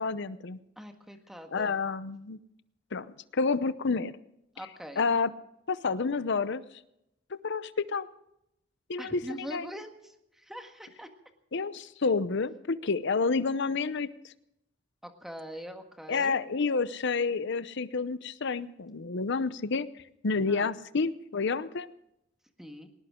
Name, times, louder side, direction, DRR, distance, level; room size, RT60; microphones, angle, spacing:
voice 1, 0.0-0.6 1.5-2.4 2.9-4.1 5.0-5.3 5.7-6.6 7.3-8.1 8.9-9.7 11.5-14.3 16.1-19.9 20.2-21.9, left 4 dB, 65° left, 14 dB, 0.7 m, -29 dB
voice 2, 0.8-1.7 4.5-5.0 9.0-11.1 15.0-16.4 20.5-20.7 22.6-22.9, equal, ahead, 5 dB, 1.7 m, -43 dB
19.0 x 19.0 x 3.7 m, 0.82 s
head